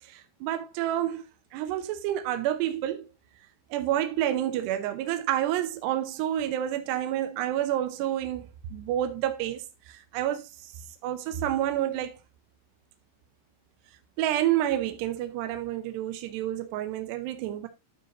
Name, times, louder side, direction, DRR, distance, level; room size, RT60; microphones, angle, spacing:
voice 1, 0.0-1.2 1.5-3.1 3.7-10.7 11.0-12.2 14.2-17.7, right 12 dB, 80° right, 2.5 m, -29 dB
12.0 x 4.6 x 3.9 m
omnidirectional pair, 5.7 m